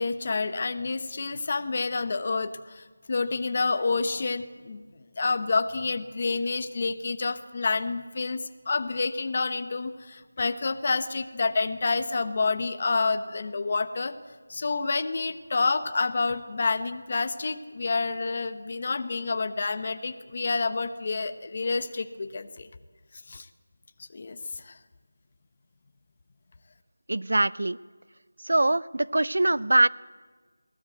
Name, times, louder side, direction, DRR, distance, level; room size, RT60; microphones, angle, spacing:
voice 1, 0.0-4.8 5.2-14.1 14.5-22.7 23.3-23.5 24.1-24.4 24.6-24.7, left 4 dB, 35° left, 10 dB, 0.9 m, -28 dB
voice 2, 27.1-27.8 28.4-29.9, right 2 dB, 80° right, 20 dB, 0.6 m, -23 dB
22.5 x 18.0 x 8.0 m, 1.4 s
figure-of-eight pair, 175°, 0 cm